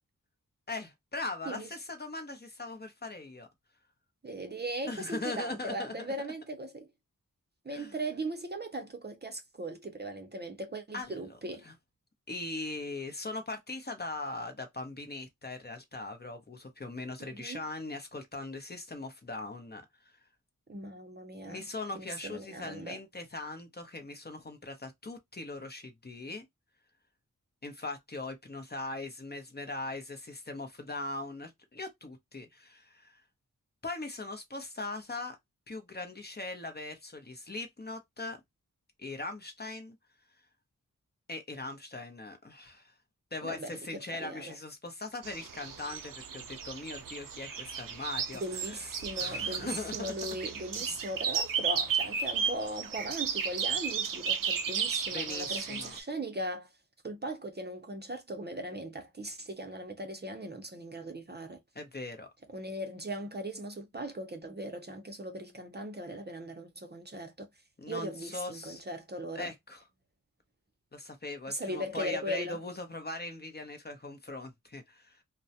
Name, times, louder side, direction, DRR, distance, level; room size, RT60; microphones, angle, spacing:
voice 1, 0.7-3.5 4.8-6.1 7.7-7.9 10.9-11.3 11.6-11.7 12.3-20.2 21.5-26.5 27.6-33.2 33.8-35.4 35.7-38.4 39.0-40.0 41.3-42.9 43.3-48.8 49.2-50.1 55.1-56.0 61.7-62.3 67.8-68.8 69.3-69.8 70.9-75.2, left 2 dB, 30° left, 0.7 m, -40 dB
voice 2, 4.2-6.9 7.6-11.6 17.2-17.6 20.7-21.6 21.9-23.0 43.4-43.8 44.1-44.6 48.3-56.7 57.0-61.6 62.5-67.5 67.9-69.5 71.5-72.6, right 1 dB, 30° right, 0.6 m, -39 dB
sound 1, 45.2-56.0, right 6 dB, 85° right, 0.5 m, -34 dB
2.2 x 2.1 x 2.7 m
wide cardioid pair, 65°, 32 cm